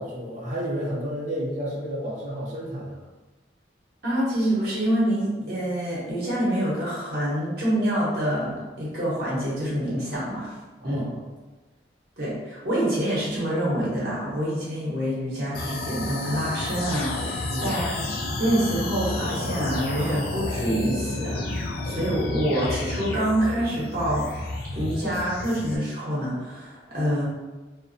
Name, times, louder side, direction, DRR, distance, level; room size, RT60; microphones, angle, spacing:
voice 1, 0.0-3.0 10.8-11.3 17.5-17.8, equal, 40° right, -5 dB, 0.5 m, -31 dB
voice 2, 4.0-10.6 10.8-11.1 12.2-18.1 18.4-24.3 24.7-27.3, equal, 55° right, -8 dB, 0.9 m, -26 dB
sound 1, 15.5-25.8, left 2 dB, 50° left, 0.3 m, -31 dB
2.5 x 2.1 x 2.5 m, 1.2 s
head